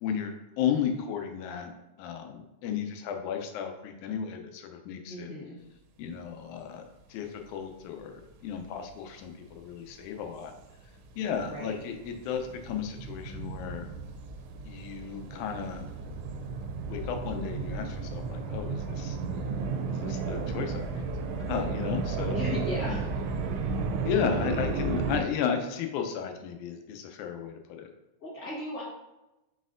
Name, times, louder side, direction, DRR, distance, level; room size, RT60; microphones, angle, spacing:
voice 1, 0.0-1.7 2.0-5.3 6.0-6.8 7.1-10.5 11.2-13.9 14.7-15.8 16.9-19.2 19.9-21.1 21.3-22.4 24.1-27.9, left 7 dB, 90° left, 5 dB, 2.1 m, -34 dB
voice 2, 5.1-5.6 11.4-11.8 22.3-23.1 28.2-28.8, left 2 dB, 50° left, -6 dB, 1.1 m, -36 dB
sound 1, 8.6-8.9 9.5-25.2, right 4 dB, 80° right, 1.5 m, -33 dB
5.2 x 4.1 x 2.5 m, 0.98 s
omnidirectional pair, 3.4 m